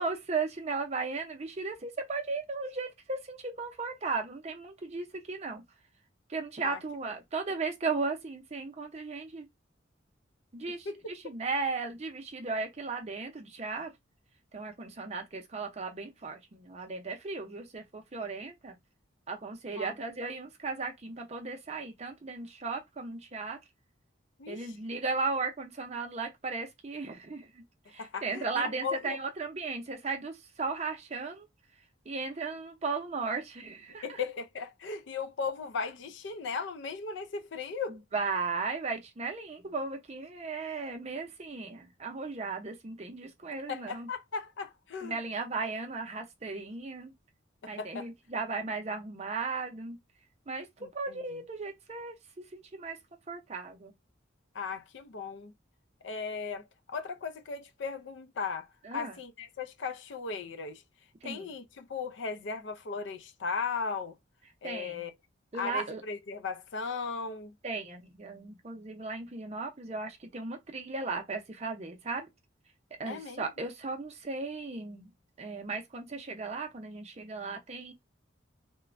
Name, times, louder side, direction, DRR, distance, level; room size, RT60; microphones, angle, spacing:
voice 1, 0.0-5.6 6.3-9.5 10.5-13.9 14.5-18.8 19.3-23.6 24.5-27.6 27.9-31.5 32.1-34.2 37.9-44.1 45.0-47.1 47.7-50.0 50.5-53.0 53.3-53.9 58.8-59.2 61.2-61.5 64.6-65.1 65.5-66.0 67.6-72.3 73.0-75.1 75.4-77.9, right 4 dB, 35° right, 0.5 m, -36 dB
voice 2, 24.4-24.7 28.0-29.2 33.9-38.0 43.5-45.2 47.8-48.1 50.8-51.4 54.5-55.5 56.0-60.8 61.2-64.2 64.6-65.1 65.5-67.5 73.1-73.5, left 5 dB, 70° left, 0.4 m, -37 dB
3.0 x 2.1 x 2.4 m
head